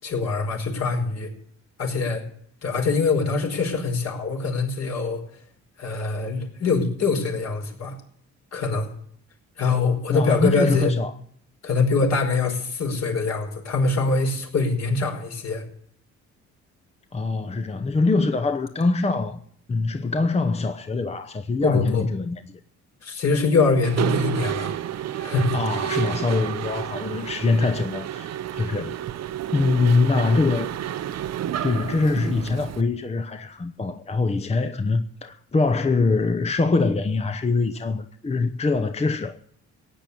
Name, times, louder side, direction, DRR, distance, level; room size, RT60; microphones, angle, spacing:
voice 1, 0.0-1.3 1.8-2.2 2.6-5.2 5.8-8.0 8.5-8.9 9.6-10.9 11.6-15.6 21.6-22.0 23.0-24.7 25.2-25.6, left 4 dB, 60° left, 5.2 m, -23 dB
voice 2, 10.1-11.1 17.1-19.4 19.7-22.4 25.5-29.0 29.5-30.7 31.6-39.5, left 3 dB, 20° left, 0.8 m, -23 dB
Mechanisms, 23.8-32.8, right 11 dB, 60° right, 0.7 m, -30 dB
16.5 x 9.1 x 8.5 m
cardioid pair, 90°, 30 cm